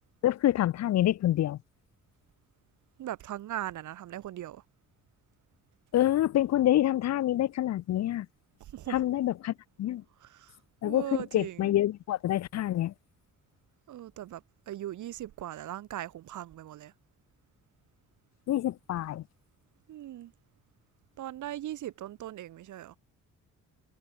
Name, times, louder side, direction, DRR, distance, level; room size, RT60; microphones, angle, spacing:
voice 1, 0.2-1.6 5.9-8.3 8.9-10.0 10.8-12.9 18.5-19.2, left 13 dB, 60° left, 0.7 m, -27 dB
voice 2, 3.0-4.6 8.6-9.0 10.2-10.6 10.8-11.7 13.9-16.9 19.9-20.3 21.2-23.0, right 13 dB, 75° right, 2.5 m, -39 dB
cardioid pair, 90°, 30 cm